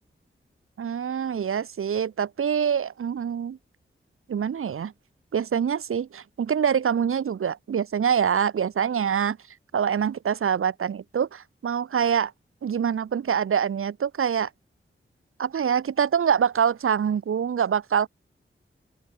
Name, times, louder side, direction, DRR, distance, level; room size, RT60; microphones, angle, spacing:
voice 1, 0.8-3.6 4.3-4.9 5.3-9.4 9.7-12.3 12.6-14.5 15.4-18.1, right 7 dB, 90° right, 0.9 m, -25 dB
open air
cardioid pair, 60°, 21 cm